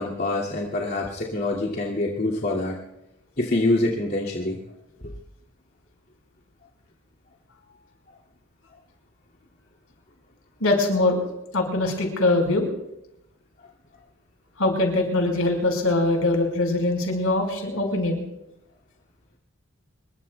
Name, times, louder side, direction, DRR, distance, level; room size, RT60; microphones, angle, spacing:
voice 1, 0.0-2.8 3.4-4.6, left 2 dB, 50° left, -5 dB, 2.4 m, -25 dB
voice 2, 10.6-11.2 11.5-12.7 14.6-18.2, left 2 dB, 90° left, 2 dB, 5.0 m, -22 dB
26.5 x 22.0 x 2.3 m, 0.88 s
head